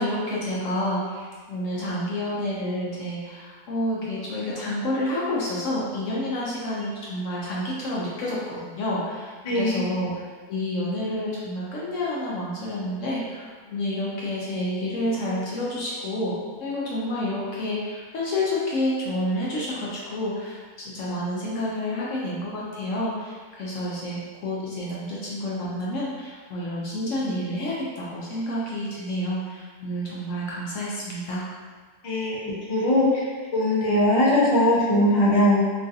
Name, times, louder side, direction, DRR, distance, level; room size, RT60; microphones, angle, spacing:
voice 1, 0.0-31.5, left 1 dB, 65° left, -6 dB, 0.8 m, -29 dB
voice 2, 9.4-9.8 32.0-32.4 32.7-33.2 33.5-35.6, left 1 dB, 50° left, -7 dB, 0.4 m, -20 dB
3.0 x 2.4 x 2.6 m, 1.5 s
omnidirectional pair, 1.7 m